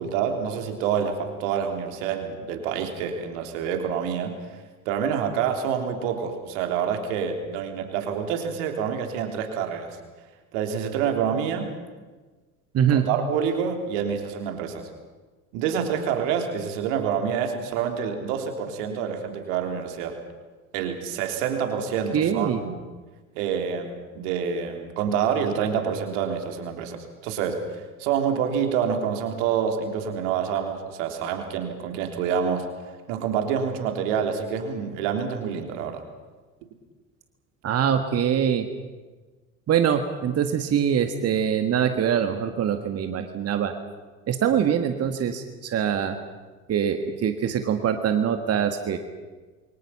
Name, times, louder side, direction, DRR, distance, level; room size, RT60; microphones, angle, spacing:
voice 1, 0.0-4.4 4.9-10.0 10.5-11.7 12.9-14.9 15.5-20.2 20.7-22.9 23.4-27.7 28.0-36.0, right 7 dB, 60° right, 5 dB, 3.5 m, -27 dB
voice 2, 12.7-13.1 22.1-22.6 37.6-38.7 39.7-43.7 44.3-46.2 46.7-49.0, right 8 dB, 35° right, 7 dB, 1.9 m, -23 dB
28.0 x 24.0 x 5.8 m, 1.3 s
figure-of-eight pair, 65°, 42 cm